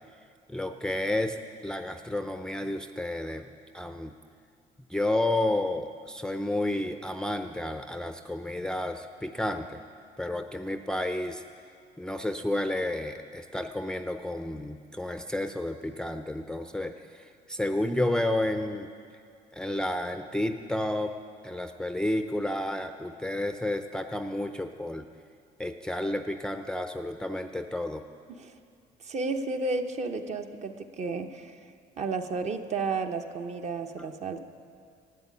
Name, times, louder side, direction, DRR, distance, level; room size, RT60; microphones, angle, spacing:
voice 1, 0.5-4.1 4.9-9.8 10.2-11.4 12.0-18.9 19.5-21.1 21.4-25.1 25.6-28.0, left 1 dB, 5° left, 7 dB, 0.5 m, -31 dB
voice 2, 29.0-31.6 32.0-34.4, right 3 dB, 40° right, 6 dB, 0.9 m, -32 dB
12.5 x 8.3 x 9.7 m, 2.3 s
cardioid pair, 110°, 17 cm